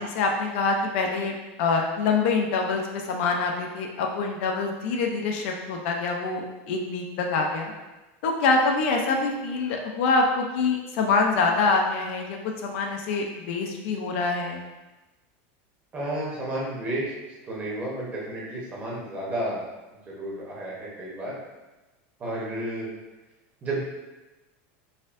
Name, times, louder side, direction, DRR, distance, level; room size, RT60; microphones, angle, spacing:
voice 1, 0.0-1.3 1.6-7.7 8.2-14.6, left 4 dB, 65° left, 2 dB, 0.5 m, -25 dB
voice 2, 15.9-17.1 17.4-19.6 20.1-21.3 22.2-22.9 23.6-23.8, right 1 dB, 20° right, -5 dB, 0.9 m, -31 dB
4.1 x 2.6 x 2.5 m, 1.1 s
supercardioid pair, 155°, 7 cm